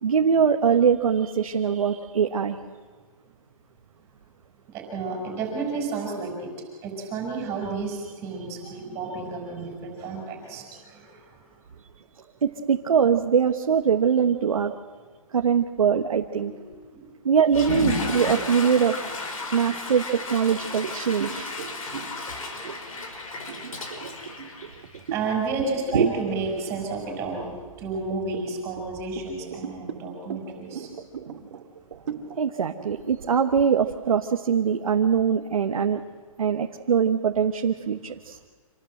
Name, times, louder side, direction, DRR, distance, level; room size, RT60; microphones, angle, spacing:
voice 1, 0.0-2.6 12.4-14.7 15.3-16.5 17.2-19.0 19.5-21.5 25.9-26.1 32.4-36.0 36.4-38.4, right 7 dB, 75° right, 5 dB, 1.3 m, -22 dB
voice 2, 4.7-6.5 6.8-11.5 16.4-16.6 16.9-17.1 25.1-27.5 27.8-30.9, right 4 dB, 15° right, 1 dB, 5.7 m, -31 dB
Water / Toilet flush, 17.4-25.2, left 2 dB, 75° left, 5.6 m, -33 dB
sound 1, 20.3-25.4 25.9-26.1 26.6-27.4 27.9-34.6, right 7 dB, 55° right, 2.3 m, -39 dB
27.0 x 18.5 x 7.8 m, 1.5 s
hypercardioid pair, 170°, 18 cm